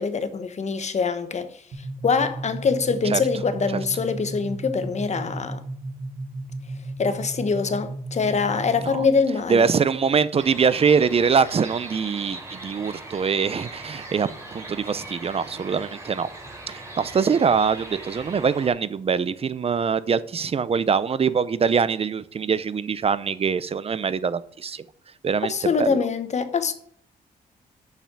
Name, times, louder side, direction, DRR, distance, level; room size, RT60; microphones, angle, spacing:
voice 1, 0.0-1.5 2.0-5.6 7.0-9.7 25.5-26.7, left 5 dB, 45° left, 1.1 m, -24 dB
sound 1, 1.7-9.3, right 2 dB, 60° right, 2.6 m, -35 dB
voice 2, 9.5-16.3 16.7-24.8 25.2-25.5 25.8-26.0, right 6 dB, 40° right, 0.6 m, -23 dB
sound 2, 10.4-18.7, right 2 dB, 15° right, 3.5 m, -40 dB
6.7 x 5.9 x 7.3 m
cardioid pair, 80°, 16 cm